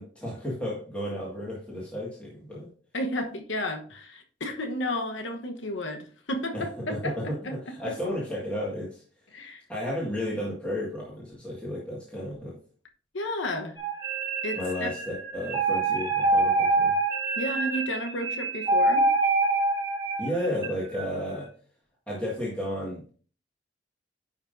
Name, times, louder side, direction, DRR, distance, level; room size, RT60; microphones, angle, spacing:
voice 1, 0.0-2.7 6.5-7.2 7.5-9.0 9.7-12.6 14.6-16.9 20.2-21.5 22.1-23.1, equal, 5° left, -6 dB, 1.8 m, -33 dB
voice 2, 2.9-7.5 9.3-9.6 13.1-13.8 14.4-14.9 17.4-19.1, left 1 dB, 80° left, 5 dB, 1.1 m, -32 dB
sound 1, 13.8-21.0, right 3 dB, 20° right, 1.7 m, -26 dB
10.5 x 5.5 x 2.6 m, 0.42 s
head